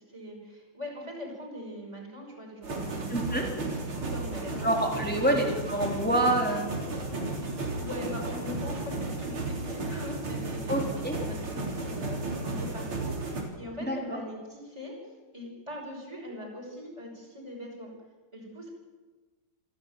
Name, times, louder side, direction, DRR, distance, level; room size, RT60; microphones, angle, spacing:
voice 1, 0.1-3.7 4.0-4.7 5.2-5.4 7.7-10.9 11.2-14.9 15.3-17.9 18.3-18.7, left 1 dB, 15° right, -2 dB, 5.8 m, -41 dB
sound 1, 2.6-13.4, right 2 dB, 80° right, 4.3 m, -34 dB
voice 2, 3.1-3.5 4.6-6.7 10.7-11.1 13.8-14.0, right 1 dB, 5° left, 0 dB, 3.3 m, -27 dB
27.5 x 10.5 x 9.2 m, 1.3 s
omnidirectional pair, 2.3 m